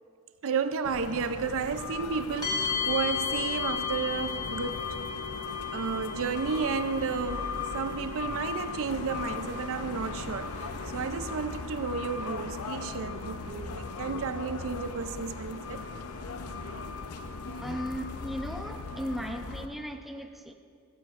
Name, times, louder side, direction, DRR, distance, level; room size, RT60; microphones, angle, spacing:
voice 1, 0.4-4.9 5.7-10.7 10.9-15.8, right 5 dB, 65° right, 0.5 m, -32 dB
sound 1, 0.8-19.7, left 4 dB, 80° left, 0.7 m, -38 dB
sound 2, 2.4-18.1, left 6 dB, 20° left, 1.9 m, -38 dB
voice 2, 17.6-20.5, equal, ahead, 0.6 m, -36 dB
15.5 x 14.5 x 2.5 m
head